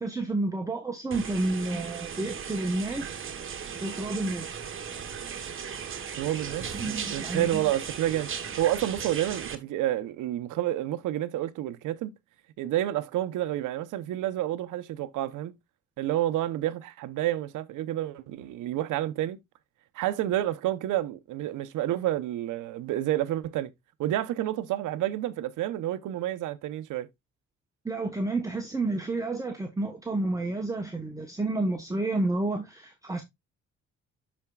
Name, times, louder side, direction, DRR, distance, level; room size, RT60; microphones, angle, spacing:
voice 1, 0.0-3.2 3.8-4.5 6.7-7.7 27.8-33.2, right 2 dB, 10° right, 1.0 m, -30 dB
sound 1, 1.1-9.6, right 7 dB, 45° right, 1.2 m, -37 dB
voice 2, 6.2-12.1 12.6-15.5 16.0-19.4 19.9-23.7 24.0-27.1, right 13 dB, 85° right, 0.8 m, -29 dB
13.0 x 4.4 x 2.3 m
cardioid pair, 90°, 30 cm